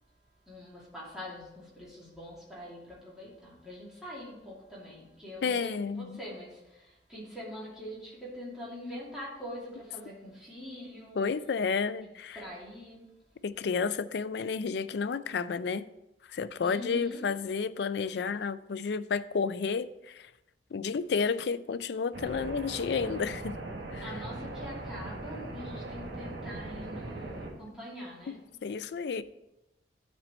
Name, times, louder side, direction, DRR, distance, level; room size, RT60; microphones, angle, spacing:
voice 1, 0.5-11.2 12.0-13.1 16.6-17.3 24.0-28.4, equal, 5° right, 2.5 m, -44 dB
voice 2, 5.4-6.2 11.2-12.4 13.4-15.8 16.3-20.3 20.7-23.6 23.9-24.0 28.3-29.2, left 5 dB, 65° left, 0.4 m, -31 dB
sound 1, 22.1-27.5, right 2 dB, 70° right, 1.4 m, -40 dB
12.0 x 4.4 x 4.3 m
head